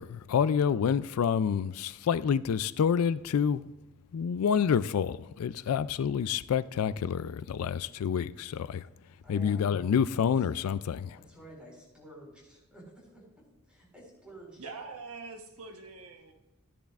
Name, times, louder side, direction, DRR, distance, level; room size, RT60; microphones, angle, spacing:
voice 1, 0.0-3.7 4.1-8.9 9.3-11.2, left 7 dB, 85° left, 0.3 m, -28 dB
voice 2, 9.2-9.6 11.1-14.7, right 1 dB, 5° right, 4.3 m, -51 dB
voice 3, 14.6-16.3, right 4 dB, 80° right, 1.1 m, -44 dB
15.0 x 10.5 x 2.4 m
head